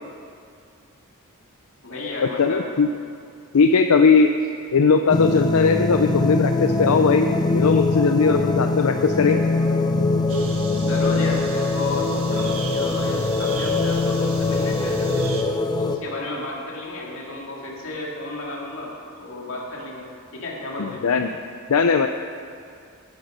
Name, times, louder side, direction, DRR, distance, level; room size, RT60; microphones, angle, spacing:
voice 1, 1.8-2.6 10.8-15.3 15.8-20.1 20.3-21.0, left 2 dB, 60° left, -3 dB, 2.7 m, -33 dB
voice 2, 2.4-2.9 3.5-4.3 4.7-9.4 20.8-21.3 21.7-22.1, left 5 dB, 85° left, 6 dB, 0.5 m, -18 dB
sound 1, 5.1-16.0, left 3 dB, 20° left, 0.6 m, -22 dB
sound 2, 10.3-15.4, right 3 dB, 70° right, 1.6 m, -36 dB
15.0 x 9.5 x 5.2 m, 2.4 s
head